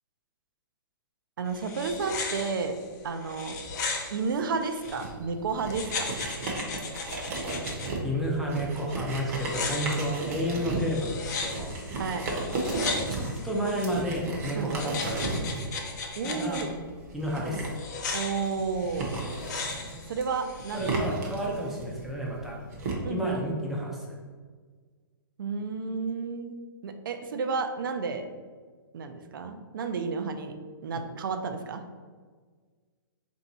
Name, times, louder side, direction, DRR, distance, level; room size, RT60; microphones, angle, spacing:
voice 1, 1.4-2.8 3.0-3.6 4.1-6.2 11.9-12.3 14.5-14.7 16.1-16.8 18.1-19.3 20.1-20.9 23.0-23.3 25.4-26.5 26.8-28.3 28.9-30.5 30.8-31.8, right 5 dB, 65° right, 7 dB, 0.5 m, -31 dB
sound 1, 1.5-5.1 5.7-7.9 9.3-14.0 14.7-16.7 17.7-21.0, left 4 dB, 50° left, 0.6 m, -36 dB
sound 2, 4.8-22.9, right 2 dB, 45° right, 0.8 m, -35 dB
voice 2, 8.0-11.7 13.1-15.5 16.2-16.6 17.1-17.7 20.7-22.6 23.1-24.1, equal, ahead, -4 dB, 0.4 m, -31 dB
3.4 x 2.7 x 4.1 m, 1.5 s
hypercardioid pair, 160°, 12 cm